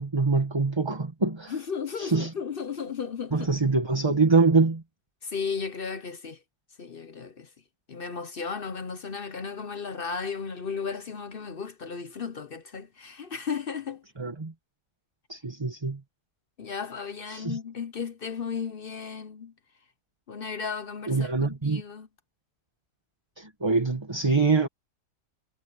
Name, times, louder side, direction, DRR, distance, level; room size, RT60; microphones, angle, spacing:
voice 1, 0.0-1.5 2.0-2.3 3.3-4.8 14.2-14.5 15.3-16.0 17.3-17.6 21.1-21.8 23.4-24.7, right 4 dB, 20° right, 1.3 m, -24 dB
voice 2, 1.5-3.5 5.2-6.4 6.8-7.5 7.9-14.0 16.6-19.5 20.3-22.1, left 6 dB, 45° left, 0.8 m, -35 dB
omnidirectional pair, 1.7 m